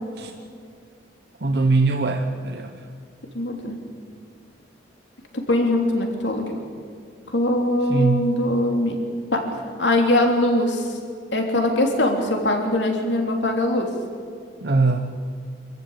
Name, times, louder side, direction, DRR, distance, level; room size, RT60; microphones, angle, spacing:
voice 1, 1.4-2.9 7.9-8.3 14.6-15.1, right 3 dB, 65° right, 4 dB, 1.1 m, -21 dB
voice 2, 3.3-3.7 5.5-6.5 7.3-9.0 9.3-9.4 9.8-11.0 11.3-13.9, left 1 dB, 80° left, 3 dB, 3.2 m, -21 dB
25.5 x 14.5 x 8.8 m, 2.2 s
head